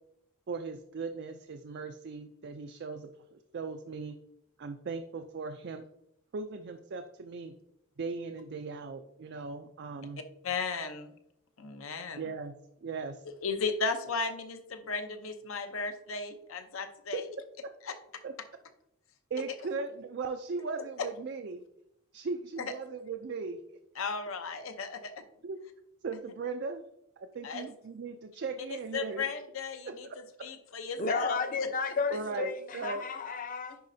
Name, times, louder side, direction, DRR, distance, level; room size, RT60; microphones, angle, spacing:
voice 1, 0.5-4.2 4.6-5.8 6.3-7.5 8.0-10.2 12.2-12.6 12.8-13.2 17.1-17.2 18.2-18.3 19.3-21.6 22.1-23.6 25.4-25.6 26.0-26.8 27.2-29.2 29.9-30.0 32.1-33.0, right 4 dB, 55° right, 7 dB, 0.4 m, -38 dB
voice 2, 10.4-11.1 11.6-12.2 13.4-17.2 17.8-17.9 24.0-25.1 27.4-27.6 28.7-30.1 30.4-31.4, left 4 dB, 75° left, 8 dB, 0.7 m, -35 dB
voice 3, 31.0-33.8, left 4 dB, 40° left, 8 dB, 0.6 m, -33 dB
10.5 x 4.1 x 2.7 m, 0.80 s
head